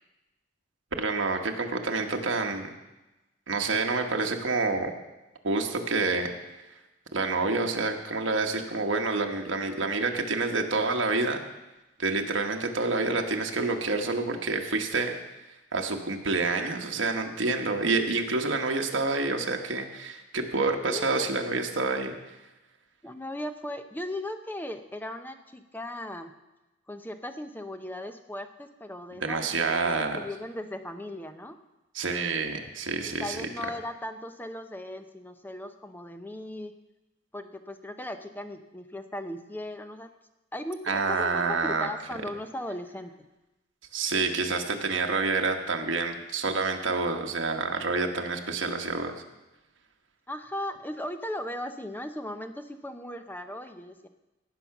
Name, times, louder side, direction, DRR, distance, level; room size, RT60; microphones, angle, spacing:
voice 1, 1.0-2.7 3.5-4.9 5.4-6.3 7.1-11.4 12.0-15.1 15.7-22.1 29.2-30.2 31.9-33.4 40.9-41.9 43.9-49.1, right 3 dB, 70° right, 3 dB, 1.3 m, -28 dB
voice 2, 20.9-21.2 23.0-26.3 26.9-31.6 33.2-36.8 37.3-40.1 40.5-43.1 50.3-54.1, left 1 dB, 10° left, 8 dB, 0.7 m, -37 dB
17.0 x 5.8 x 5.9 m, 1.0 s
head